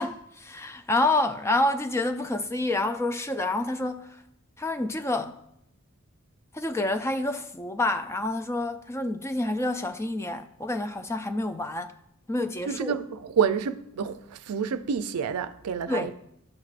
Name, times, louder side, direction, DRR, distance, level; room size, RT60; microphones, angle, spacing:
voice 1, 0.0-4.1 4.6-5.3 6.5-11.9 12.3-13.0 15.9-16.1, left 2 dB, 10° left, 0.3 m, -28 dB
voice 2, 12.7-16.1, right 7 dB, 85° right, 0.4 m, -28 dB
12.0 x 4.6 x 2.5 m
head